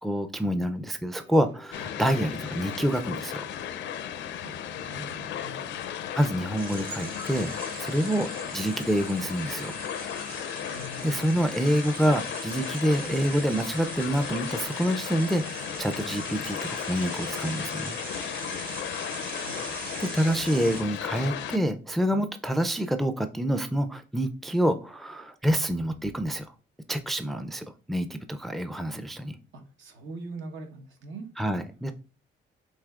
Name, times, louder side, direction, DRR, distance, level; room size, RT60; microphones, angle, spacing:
voice 1, 0.0-3.4 6.2-9.7 10.7-17.9 20.0-26.5 26.9-29.4 31.4-31.9, equal, ahead, 8 dB, 0.4 m, -27 dB
sound 1, 1.2-12.1, left 2 dB, 90° right, 1.9 m, -51 dB
sound 2, 1.7-21.6, left 9 dB, 70° left, 0.4 m, -35 dB
voice 2, 4.8-5.7 10.6-11.3 19.3-19.6 29.5-31.3, right 2 dB, 75° right, 4 dB, 1.0 m, -42 dB
sound 3, 6.6-20.8, right 4 dB, 45° right, 0.9 m, -41 dB
7.2 x 2.8 x 2.3 m, 0.36 s
cardioid pair, 90°, 20 cm